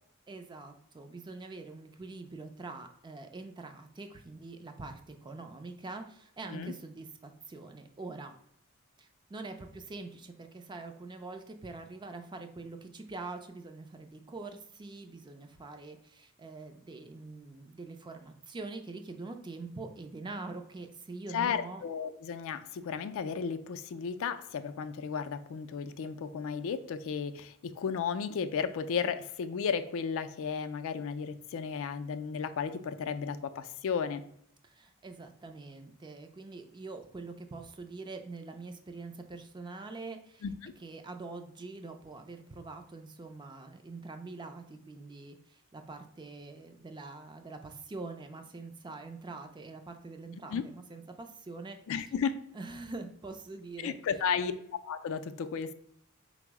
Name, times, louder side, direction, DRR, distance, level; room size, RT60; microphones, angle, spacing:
voice 1, 0.3-8.4 9.0-21.8 34.6-40.4 40.8-51.8 52.5-54.0, right 3 dB, 20° right, 6 dB, 0.4 m, -44 dB
voice 2, 21.3-34.2 40.4-40.7 50.5-50.6 51.9-52.4 53.8-54.5 54.8-55.7, left 6 dB, 65° left, 10 dB, 0.3 m, -34 dB
4.4 x 2.0 x 4.6 m, 0.71 s
head